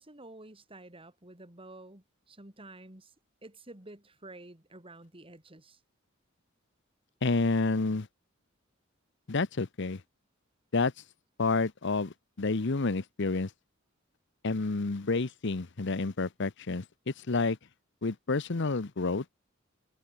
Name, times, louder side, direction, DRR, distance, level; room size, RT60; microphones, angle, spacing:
voice 1, 0.0-3.1 3.4-5.8, right 2 dB, 25° right, 3.5 m, -50 dB
voice 2, 7.2-8.1 9.3-10.0 10.7-10.9 11.4-13.5 14.4-17.6 18.0-19.2, left 3 dB, 60° left, 0.9 m, -29 dB
head